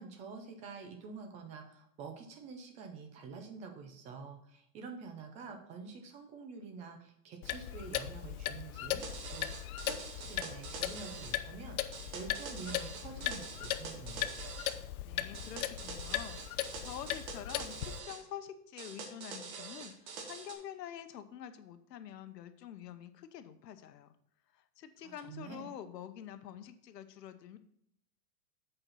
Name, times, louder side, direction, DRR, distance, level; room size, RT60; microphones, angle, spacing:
voice 1, 0.0-9.0 9.3-14.3 25.0-25.7, right 5 dB, 15° right, 5 dB, 0.5 m, -47 dB
Clock, 7.4-18.0, left 12 dB, 60° left, 0.7 m, -38 dB
sound 1, 9.0-11.4 11.9-14.8 15.3-18.2 18.8-20.5, right 4 dB, 60° right, 1.8 m, -45 dB
voice 2, 15.0-24.1 24.5-27.6, left 10 dB, 80° left, 10 dB, 1.0 m, -47 dB
7.9 x 4.5 x 5.6 m, 0.72 s
supercardioid pair, 155°, 48 cm